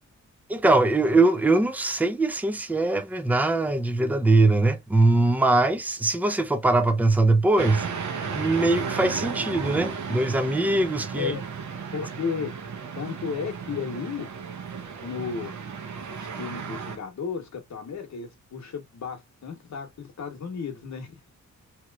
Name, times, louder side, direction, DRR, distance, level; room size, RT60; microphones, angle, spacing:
voice 1, 0.5-7.9 8.3-11.3, right 2 dB, 5° right, 0.4 m, -22 dB
sound 1, 7.6-17.0, right 5 dB, 70° right, 0.9 m, -34 dB
voice 2, 11.9-14.3 15.0-15.6 16.2-21.3, left 6 dB, 65° left, 1.0 m, -34 dB
3.0 x 2.8 x 2.3 m
wide cardioid pair, 155°, 31 cm